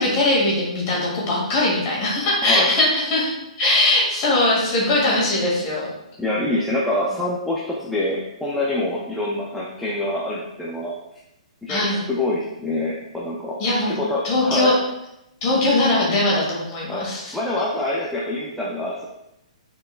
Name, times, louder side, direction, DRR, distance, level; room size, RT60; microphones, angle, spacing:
voice 1, 0.0-5.9 11.7-12.0 13.6-13.9 14.2-14.7 15.4-17.4, left 2 dB, 25° left, -5 dB, 2.0 m, -20 dB
voice 2, 2.4-2.7 6.2-11.0 11.6-13.6 13.9-14.8 16.9-19.0, left 1 dB, ahead, -5 dB, 0.4 m, -26 dB
9.6 x 4.4 x 2.3 m, 0.86 s
hypercardioid pair, 175°, 4 cm